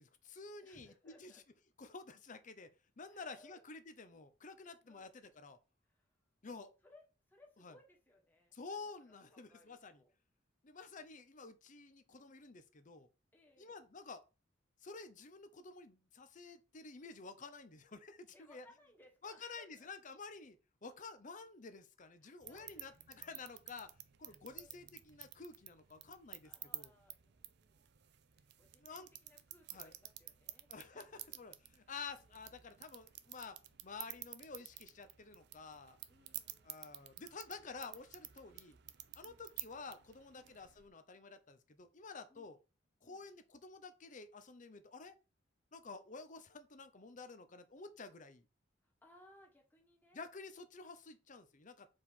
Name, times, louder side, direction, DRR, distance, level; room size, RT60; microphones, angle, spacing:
voice 1, 0.0-1.4 1.8-5.6 6.4-6.7 7.6-7.8 8.5-10.0 10.6-13.1 13.6-14.2 14.8-18.7 19.2-23.9 24.2-26.9 28.8-29.1 29.7-29.9 30.7-36.0 36.6-38.8 39.1-42.6 43.0-45.2 45.7-48.5 50.1-51.9, left 4 dB, 40° left, 0.8 m, -51 dB
voice 2, 0.6-1.4 3.1-3.7 4.6-5.1 5.8-6.1 6.8-10.1 13.3-13.8 18.3-19.9 22.2-23.0 24.2-24.8 26.4-27.9 28.3-31.4 32.1-32.4 36.1-37.1 38.4-38.6 39.2-39.5 40.3-40.6 42.3-42.6 43.0-43.2 48.8-50.2, left 1 dB, 10° left, 1.6 m, -66 dB
sound 1, 22.4-40.9, right 14 dB, 60° right, 0.5 m, -52 dB
4.9 x 4.3 x 5.5 m
head